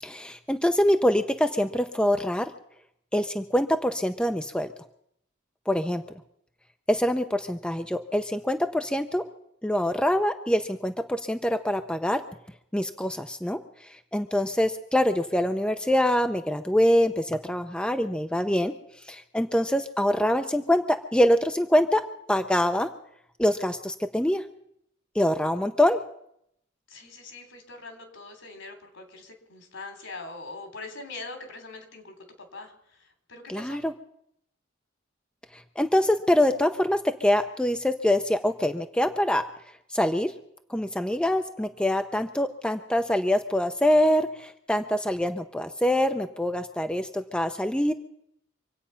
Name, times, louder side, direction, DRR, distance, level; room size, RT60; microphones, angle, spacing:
voice 1, 0.0-2.5 3.1-4.7 5.7-6.0 6.9-9.2 9.6-12.2 12.7-13.6 14.1-18.7 19.1-22.0 22.3-22.9 23.4-24.4 25.2-26.0 33.5-33.9 35.8-39.4 39.9-40.3 40.7-47.9, left 1 dB, 5° left, 7 dB, 0.6 m, -24 dB
voice 2, 26.9-32.1 32.5-32.7 33.3-33.8, left 3 dB, 70° left, 6 dB, 3.3 m, -42 dB
25.5 x 8.7 x 5.7 m, 0.73 s
head